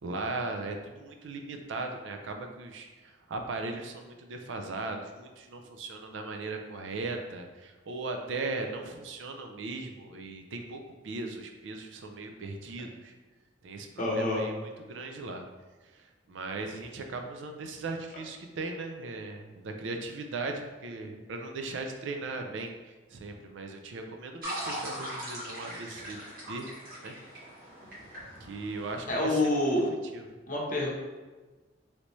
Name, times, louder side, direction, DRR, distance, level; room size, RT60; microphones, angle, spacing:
voice 1, 0.0-13.1 13.6-15.4 15.9-26.7 27.0-27.1 28.4-29.5 29.9-30.3, right 3 dB, 75° right, 4 dB, 0.4 m, -38 dB
voice 2, 14.0-14.5 29.1-29.9 30.5-30.9, left 1 dB, 45° left, -3 dB, 0.7 m, -27 dB
sound 1, 24.4-29.9, right 1 dB, 50° right, 1.3 m, -41 dB
3.3 x 2.6 x 3.0 m, 1.3 s
head